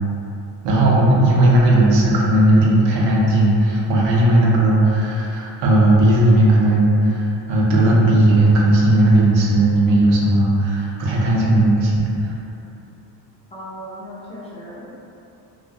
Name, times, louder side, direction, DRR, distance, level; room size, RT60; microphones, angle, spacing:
voice 1, 0.6-12.3, right 1 dB, 85° right, -4 dB, 0.7 m, -16 dB
voice 2, 13.5-15.0, equal, 15° left, -10 dB, 0.3 m, -37 dB
2.2 x 2.1 x 2.6 m, 2.7 s
cardioid pair, 130°, 43 cm